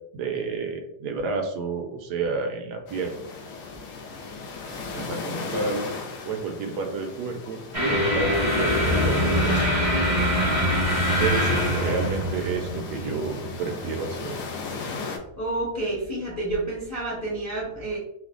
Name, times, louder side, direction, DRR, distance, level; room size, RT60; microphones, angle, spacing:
voice 1, 0.1-3.1 4.9-5.9 6.2-9.2 11.2-14.4, right 4 dB, 75° right, 4 dB, 1.0 m, -30 dB
sound 1, 2.9-15.2, left 4 dB, 70° left, 0.7 m, -36 dB
sound 2, 7.7-14.2, equal, 30° right, 0.6 m, -24 dB
voice 2, 15.4-18.0, right 2 dB, 20° left, -5 dB, 0.5 m, -29 dB
3.2 x 2.1 x 3.6 m, 0.76 s
omnidirectional pair, 2.1 m